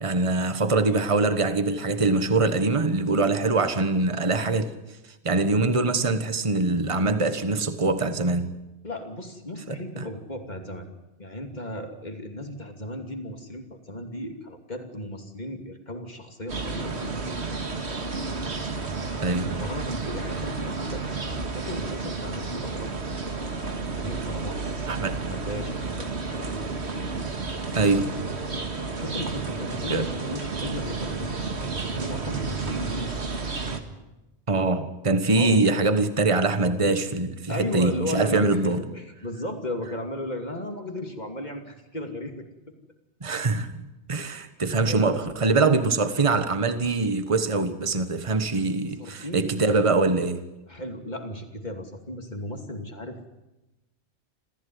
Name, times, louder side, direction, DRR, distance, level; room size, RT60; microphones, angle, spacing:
voice 1, 0.0-4.7 5.2-8.5 10.0-10.1 19.2-19.6 24.9-25.2 27.7-28.1 29.9-30.1 34.5-38.8 43.2-43.8 44.1-50.4, right 3 dB, 30° right, 1.4 m, -23 dB
voice 2, 8.8-10.9 11.2-17.9 19.4-21.0 21.5-22.9 23.3-26.7 28.8-33.3 35.3-35.6 37.5-42.5 44.2-44.5 44.9-45.3 49.0-49.5 50.7-53.4, left 1 dB, 40° left, 2.8 m, -36 dB
sound 1, 16.5-33.8, right 4 dB, 75° right, 2.2 m, -31 dB
27.5 x 15.0 x 9.5 m
omnidirectional pair, 1.1 m